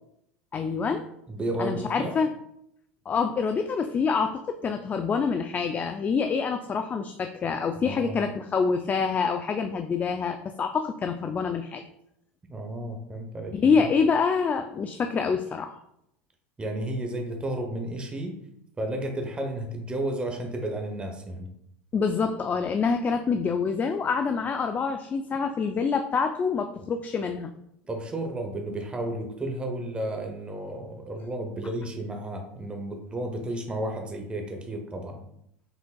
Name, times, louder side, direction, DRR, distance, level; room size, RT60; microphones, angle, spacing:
voice 1, 0.5-1.0 1.6-2.3 3.1-11.8 13.5-15.7 21.9-27.5, left 5 dB, 25° left, 6 dB, 0.3 m, -26 dB
voice 2, 1.3-2.2 7.8-8.3 12.5-13.9 16.6-18.4 18.8-21.5 27.9-35.2, right 1 dB, 15° right, 3 dB, 0.8 m, -32 dB
5.9 x 3.8 x 2.3 m, 0.77 s
hypercardioid pair, 90°, 6 cm